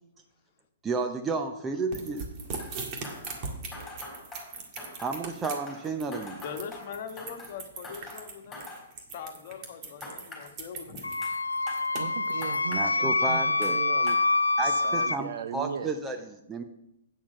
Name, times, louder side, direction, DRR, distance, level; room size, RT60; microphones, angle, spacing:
voice 1, 0.8-2.3 5.0-6.4 12.7-13.8 14.6-16.6, right 4 dB, 15° right, 6 dB, 0.6 m, -32 dB
sound 1, 1.9-12.6, right 4 dB, 30° right, 1.9 m, -40 dB
sound 2, 2.6-2.8 3.0-5.2 5.4-7.6 7.8-8.8 10.0-10.4 11.2-11.3 11.7-11.8 12.4-12.9 13.6-13.7 14.1-14.2, left 2 dB, 5° left, 4.1 m, -44 dB
voice 2, 6.4-8.6 9.1-11.1, left 7 dB, 45° left, 5 dB, 1.3 m, -41 dB
Wind instrument woodwind instrument, 11.0-15.2, left 3 dB, 80° left, 0.3 m, -26 dB
voice 3, 12.0-14.2 14.6-15.9, right 7 dB, 55° right, 11 dB, 0.6 m, -37 dB
9.0 x 7.3 x 5.7 m, 0.80 s
figure-of-eight pair, 115°, 0 cm